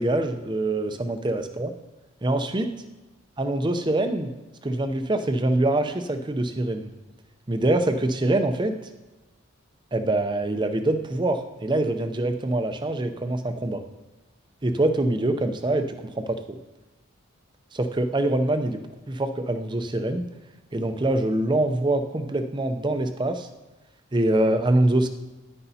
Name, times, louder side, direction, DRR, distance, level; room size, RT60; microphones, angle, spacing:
voice 1, 0.0-1.7 2.2-2.7 3.4-4.3 4.6-6.9 7.5-8.8 9.9-13.8 14.6-15.9 16.2-16.4 17.7-20.3 20.7-23.5 24.1-25.1, right 1 dB, 20° right, 8 dB, 0.5 m, -24 dB
10.0 x 9.7 x 2.8 m, 1.1 s
head